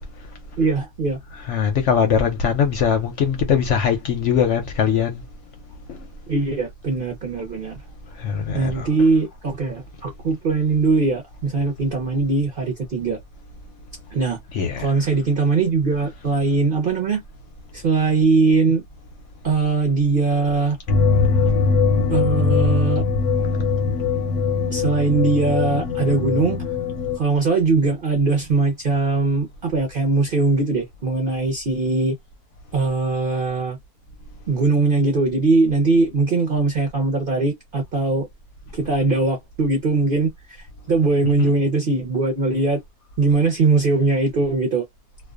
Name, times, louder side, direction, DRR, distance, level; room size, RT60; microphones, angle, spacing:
voice 1, 0.6-1.2 6.3-7.8 8.5-13.2 14.1-14.4 14.8-17.2 17.7-18.8 19.4-20.8 22.1-23.0 24.7-26.6 27.1-32.2 32.7-33.8 34.5-38.3 38.7-42.8 43.2-44.8, right 3 dB, 55° right, 0.6 m, -21 dB
voice 2, 1.5-5.2 5.9-6.0 8.1-8.9 14.5-14.9, left 7 dB, 65° left, 0.7 m, -21 dB
sound 1, 20.9-27.2, left 5 dB, 90° left, 1.1 m, -21 dB
2.4 x 2.2 x 2.3 m
omnidirectional pair, 1.6 m